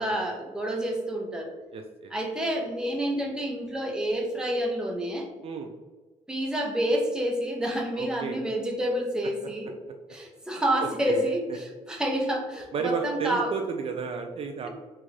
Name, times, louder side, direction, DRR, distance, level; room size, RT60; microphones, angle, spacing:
voice 1, 0.0-1.5 2.1-5.3 6.3-9.8 10.1-13.5, right 1 dB, 5° right, 0 dB, 0.7 m, -28 dB
voice 2, 1.7-2.1 5.4-5.7 8.0-8.4 10.8-11.3 12.7-14.7, right 5 dB, 45° right, 4 dB, 0.3 m, -32 dB
3.6 x 2.4 x 3.1 m, 1.3 s
cardioid pair, 95°, 13 cm